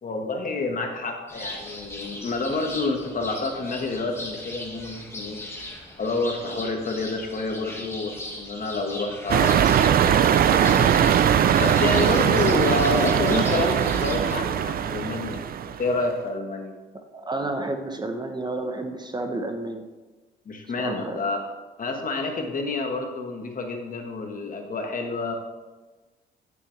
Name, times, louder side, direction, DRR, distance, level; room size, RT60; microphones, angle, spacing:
voice 1, 0.0-5.4 6.0-9.5 9.9-10.9 11.2-15.4 15.8-16.8 20.4-21.4 21.8-25.4, left 3 dB, 45° left, 3 dB, 1.4 m, -28 dB
sound 1, 1.3-14.4, left 1 dB, 15° left, 1.6 m, -38 dB
sound 2, 9.3-15.9, right 9 dB, 50° right, 0.4 m, -20 dB
voice 2, 17.1-19.8 20.8-21.2, right 2 dB, 20° right, 5 dB, 0.8 m, -31 dB
9.4 x 6.9 x 3.2 m, 1.2 s
cardioid pair, 90°, 20 cm